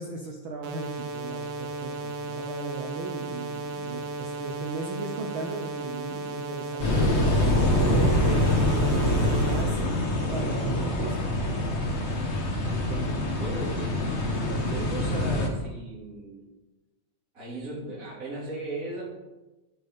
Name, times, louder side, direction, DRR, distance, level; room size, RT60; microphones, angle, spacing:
voice 1, 0.0-7.6 7.9-10.0 10.3-11.7, right 3 dB, 65° right, 2 dB, 1.2 m, -37 dB
sound 1, 0.6-9.6, right 2 dB, 90° right, 2.8 m, -35 dB
sound 2, 6.8-15.5, left 1 dB, 45° left, 0.8 m, -25 dB
voice 2, 12.6-16.4 17.3-19.0, right 2 dB, 30° right, -8 dB, 2.5 m, -38 dB
12.0 x 9.0 x 3.6 m, 1.1 s
omnidirectional pair, 3.4 m